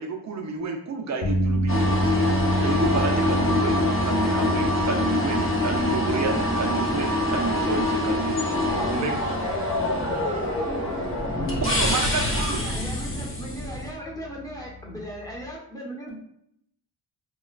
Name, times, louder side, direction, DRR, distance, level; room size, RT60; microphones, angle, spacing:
voice 1, 0.0-1.9 2.6-8.4 8.8-9.1 11.6-12.6, right 4 dB, 40° right, 3 dB, 0.6 m, -30 dB
sound 1, 1.2-15.5, right 1 dB, 80° left, 0.8 m, -30 dB
sound 2, 1.7-13.9, left 2 dB, 30° left, 0.8 m, -25 dB
voice 2, 8.3-11.0, equal, 15° right, -1 dB, 0.9 m, -36 dB
voice 3, 12.5-16.1, equal, 10° left, -3 dB, 1.1 m, -37 dB
2.9 x 2.3 x 2.4 m, 0.72 s
cardioid pair, 60°, 43 cm